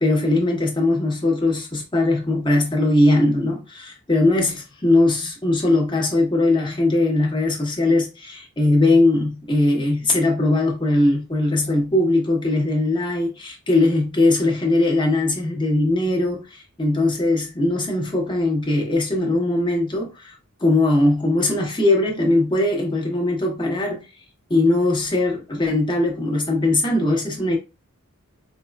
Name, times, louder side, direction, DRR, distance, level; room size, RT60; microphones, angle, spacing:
voice 1, 0.0-20.4 20.6-24.0 24.5-27.6, left 2 dB, 20° left, 1.0 m, -20 dB
4.3 x 2.4 x 2.2 m
head